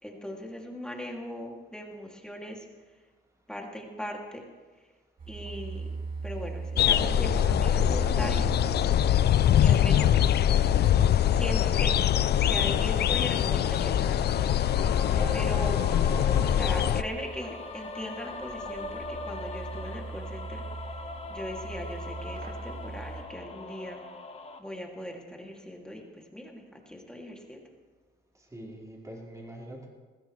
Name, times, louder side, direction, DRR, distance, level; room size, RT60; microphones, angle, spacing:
voice 1, 0.0-2.7 3.5-4.4 5.3-5.9 6.2-8.5 9.6-10.4 11.3-11.9 12.5-14.3 15.3-15.8 16.5-24.0 24.6-27.7, left 1 dB, 5° left, 0 dB, 2.7 m, -39 dB
sound 1, 5.2-23.2, right 4 dB, 45° right, 2.7 m, -40 dB
sound 2, 6.8-17.0, left 10 dB, 55° left, 0.5 m, -23 dB
sound 3, 11.0-24.6, left 3 dB, 30° left, 1.4 m, -41 dB
voice 2, 15.0-15.8 28.4-29.9, right 1 dB, 15° right, -3 dB, 4.7 m, -43 dB
21.0 x 15.5 x 3.3 m, 1.4 s
cardioid pair, 90°, 20 cm